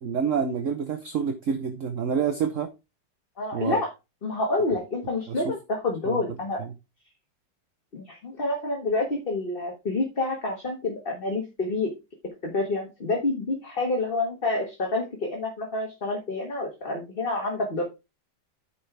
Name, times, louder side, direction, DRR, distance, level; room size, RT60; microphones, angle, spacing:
voice 1, 0.0-2.7 3.5-3.8 5.3-5.4 6.1-6.2 6.6-6.7, right 6 dB, 55° right, 8 dB, 1.1 m, -27 dB
voice 2, 3.4-3.9 4.2-6.6 7.9-11.9 12.4-17.8, left 2 dB, 30° left, 1 dB, 1.7 m, -28 dB
9.8 x 5.8 x 3.4 m, 0.25 s
omnidirectional pair, 1.9 m